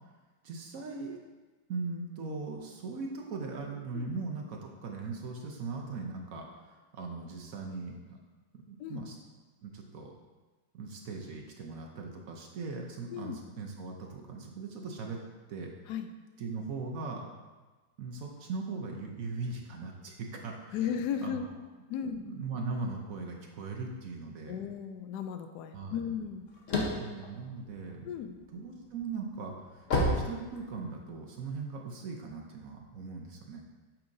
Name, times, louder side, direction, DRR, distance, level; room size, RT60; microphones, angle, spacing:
voice 1, 0.4-1.2 1.7-8.2 8.5-9.2 9.6-10.1 10.7-15.2 15.5-15.7 16.4-17.3 18.0-21.4 22.0-24.6 25.7-26.1 27.0-28.1 28.5-33.6, right 4 dB, 60° right, 1 dB, 1.0 m, -39 dB
voice 2, 20.7-21.4 21.9-22.2 24.5-26.4 28.0-28.3, left 8 dB, 75° left, 8 dB, 1.0 m, -35 dB
sound 1, 26.2-28.4 28.9-31.1, left 2 dB, 50° left, 1.3 m, -30 dB
8.7 x 5.8 x 2.6 m, 1.3 s
omnidirectional pair, 1.9 m